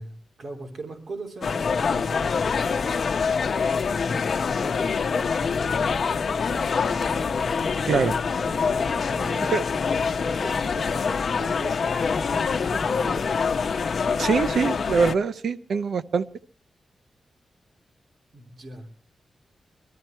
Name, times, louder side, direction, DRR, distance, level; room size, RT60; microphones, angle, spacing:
voice 1, 0.0-3.7 4.3-7.1 9.1-13.3 18.3-18.9, right 3 dB, 60° right, 2 dB, 3.2 m, -42 dB
sound 1, 1.4-15.1, left 5 dB, 60° left, 0.9 m, -25 dB
sound 2, 6.7-12.3, equal, 15° right, 2.4 m, -45 dB
voice 2, 14.2-16.3, right 5 dB, 80° right, 13 dB, 0.7 m, -23 dB
22.0 x 13.5 x 4.5 m, 0.39 s
wide cardioid pair, 115°, 0 cm